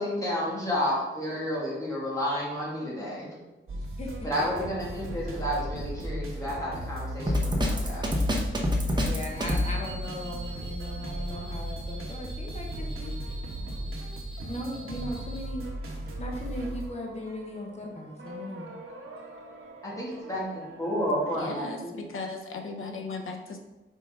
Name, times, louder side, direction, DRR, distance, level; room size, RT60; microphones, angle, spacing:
voice 1, 0.0-3.3 4.2-8.1 19.8-22.1, equal, 15° left, -6 dB, 2.1 m, -31 dB
sound 1, 3.7-21.4, right 1 dB, 85° right, 1.1 m, -37 dB
Drum kit, 7.3-9.7, left 1 dB, 20° right, 0.8 m, -25 dB
voice 2, 9.0-13.1 14.4-15.7 16.2-18.7, left 1 dB, 30° left, 0 dB, 1.0 m, -38 dB
sound 2, 9.3-15.5, right 3 dB, ahead, 2.1 m, -46 dB
voice 3, 21.3-23.6, left 3 dB, 75° left, 4 dB, 0.9 m, -37 dB
5.4 x 4.8 x 3.7 m, 1.1 s
wide cardioid pair, 160°, 21 cm